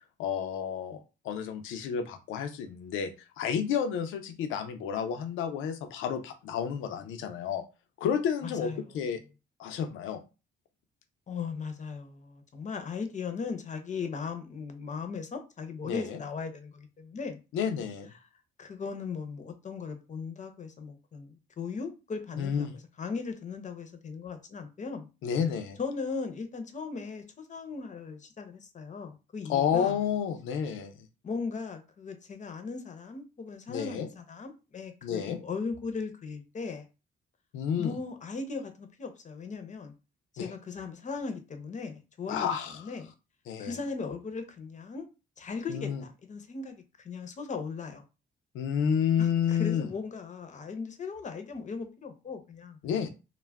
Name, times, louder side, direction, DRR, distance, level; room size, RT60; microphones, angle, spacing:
voice 1, 0.2-3.1 3.4-7.6 8.0-9.2 9.6-10.2 15.8-16.2 17.5-18.1 22.4-22.7 25.2-25.8 29.5-31.1 33.7-34.1 35.0-35.4 37.5-38.0 40.4-40.5 42.3-42.8 43.5-43.8 45.7-46.0 48.5-49.9 52.8-53.1, left 8 dB, 85° left, 0.5 m, -30 dB
voice 2, 8.4-8.8 11.3-17.4 18.6-25.1 25.8-30.0 31.2-36.8 37.8-39.9 40.3-43.1 43.6-45.1 45.4-48.0 49.2-52.8, left 5 dB, 40° left, 0.6 m, -38 dB
2.3 x 2.1 x 3.3 m
cardioid pair, 90°, 20 cm